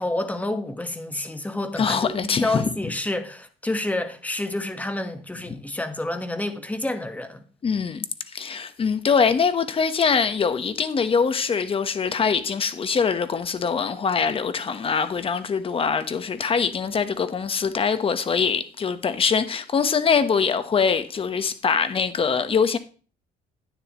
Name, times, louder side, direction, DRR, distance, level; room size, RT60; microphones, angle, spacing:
voice 1, 0.0-7.4, left 2 dB, 10° left, 1.3 m, -29 dB
voice 2, 1.8-2.6 7.6-8.1 8.3-22.8, left 6 dB, 35° left, 1.1 m, -23 dB
10.5 x 9.5 x 3.0 m
cardioid pair, 110°, 17 cm